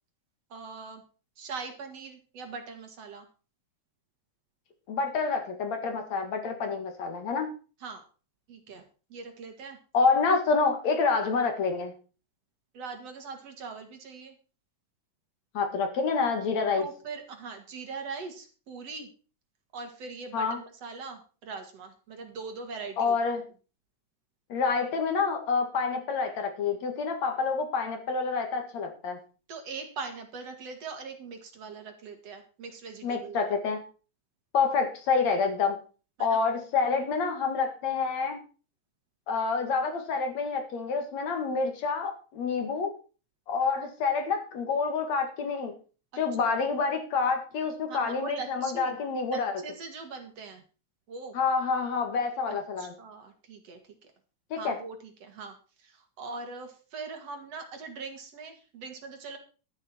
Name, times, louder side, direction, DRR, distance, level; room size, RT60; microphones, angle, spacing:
voice 1, 0.5-1.0 1.4-3.3 7.8-8.1 8.5-8.8 9.1-9.8 12.7-14.4 16.8-19.1 19.7-23.2 29.5-33.5 36.2-36.4 46.1-46.6 47.9-49.0 49.3-50.6 51.1-51.4 52.8-53.9 54.6-59.4, right 4 dB, 55° right, 5 dB, 2.9 m, -41 dB
voice 2, 4.9-7.5 9.9-11.9 15.5-16.9 20.3-20.6 23.0-23.4 24.5-29.2 33.0-33.8 34.5-35.8 36.2-38.4 39.3-42.9 43.5-45.7 46.2-49.5 51.3-52.9 54.5-54.8, left 5 dB, 65° left, 6 dB, 3.1 m, -28 dB
12.5 x 10.5 x 4.4 m, 0.36 s
omnidirectional pair, 3.5 m